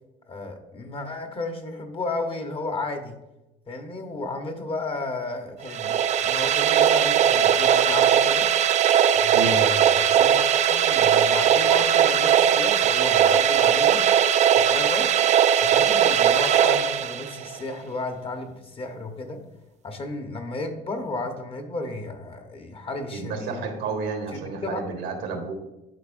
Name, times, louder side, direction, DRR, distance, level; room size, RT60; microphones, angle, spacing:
voice 1, 0.3-3.2 3.7-8.5 9.2-10.4 10.7-14.0 14.6-15.1 15.6-19.4 19.8-23.5 24.3-24.8, left 2 dB, 35° left, 5 dB, 0.9 m, -33 dB
sound 1, 5.6-17.6, right 9 dB, 45° right, 0.4 m, -19 dB
voice 2, 23.1-25.5, right 4 dB, 85° right, 4 dB, 1.3 m, -31 dB
10.5 x 4.2 x 2.5 m, 0.95 s
cardioid pair, 110°, 17 cm